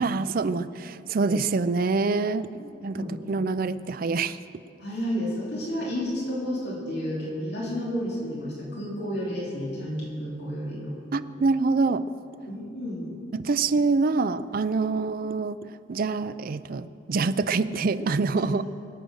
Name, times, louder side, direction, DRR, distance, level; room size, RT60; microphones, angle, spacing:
voice 1, 0.0-2.5 2.8-4.4 11.1-12.0 13.3-15.6 15.9-18.6, right 4 dB, 45° right, 12 dB, 0.4 m, -25 dB
voice 2, 2.5-3.2 4.8-11.0 12.5-13.1 18.4-18.5, equal, 55° left, -5 dB, 2.8 m, -31 dB
23.0 x 7.7 x 6.3 m, 2.6 s
head